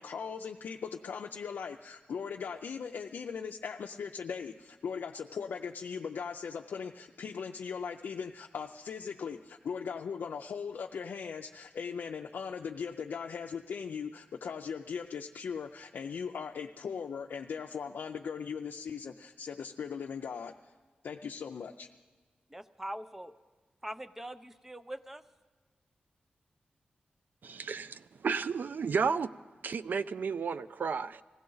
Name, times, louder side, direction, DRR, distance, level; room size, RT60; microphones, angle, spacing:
voice 1, 0.0-20.7 21.0-21.9, left 6 dB, 85° left, 2 dB, 0.4 m, -39 dB
voice 2, 22.5-23.3 23.8-25.2, right 1 dB, 10° right, 11 dB, 0.6 m, -42 dB
voice 3, 27.4-29.3 29.6-31.2, right 5 dB, 70° right, 14 dB, 0.3 m, -32 dB
20.5 x 15.5 x 3.9 m, 1.4 s
wide cardioid pair, 85°, 3 cm